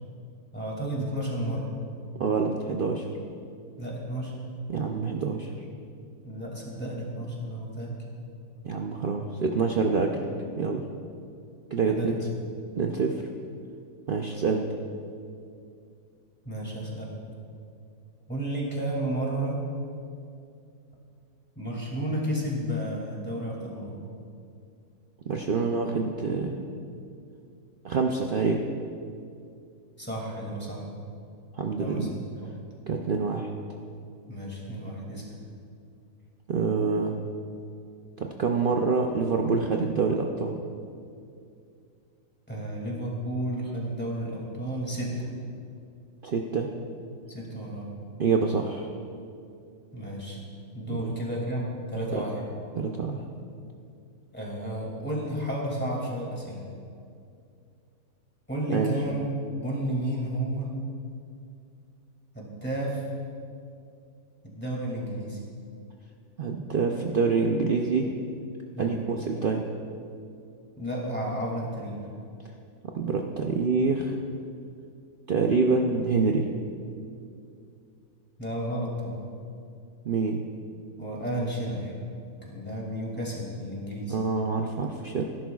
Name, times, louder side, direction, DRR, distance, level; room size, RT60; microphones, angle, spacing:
voice 1, 0.5-1.7 3.8-4.3 6.0-7.9 11.9-12.2 16.4-17.2 18.3-19.6 21.6-24.0 30.0-30.8 31.8-32.1 34.3-35.2 42.5-45.3 47.3-47.9 49.9-50.4 50.7-52.4 54.3-56.6 58.5-59.3 59.6-60.7 62.3-63.1 64.4-65.4 68.7-69.0 70.8-72.0 78.4-79.1 81.0-81.9 82.4-84.2, right 1 dB, 5° left, -4 dB, 2.2 m, -32 dB
voice 2, 2.1-3.1 4.7-5.5 8.6-10.2 10.6-10.8 11.7-12.1 12.8-13.2 14.1-14.7 25.3-26.6 27.8-28.6 31.5-32.2 32.9-33.5 36.5-37.2 38.2-40.6 46.2-46.7 48.2-48.9 50.9-51.2 52.1-52.2 52.8-53.2 58.7-58.9 66.4-68.1 68.8-69.7 72.9-74.1 75.3-76.5 80.0-80.4 84.1-85.3, right 4 dB, 60° right, 1 dB, 0.5 m, -26 dB
17.0 x 11.0 x 2.3 m, 2.4 s
omnidirectional pair, 1.6 m